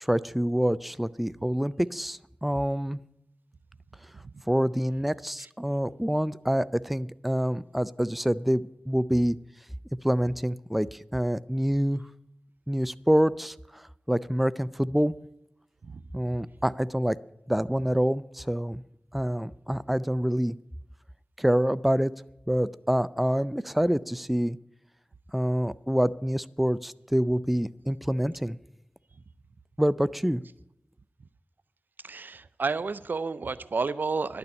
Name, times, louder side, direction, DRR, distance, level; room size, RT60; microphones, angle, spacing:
voice 1, 0.0-3.0 4.5-9.4 10.0-12.0 12.7-15.1 16.1-17.2 17.5-18.8 19.1-20.6 21.4-22.1 22.5-24.6 25.3-28.6 29.8-30.4, equal, 5° right, 0.4 m, -26 dB
voice 2, 32.0-34.4, right 4 dB, 75° right, 0.5 m, -31 dB
11.5 x 6.9 x 9.7 m
cardioid pair, 45°, 3 cm